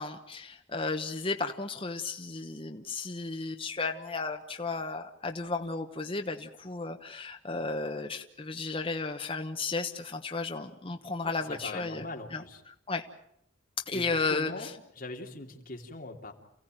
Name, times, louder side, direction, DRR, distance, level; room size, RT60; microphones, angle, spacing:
voice 1, 0.0-12.0 12.3-12.4 12.7-13.1 13.9-14.7, left 3 dB, 30° left, 5 dB, 1.1 m, -34 dB
voice 2, 11.2-12.6 13.9-14.7 15.0-16.3, left 2 dB, 45° left, 2 dB, 3.0 m, -41 dB
29.0 x 16.0 x 9.1 m, 0.76 s
head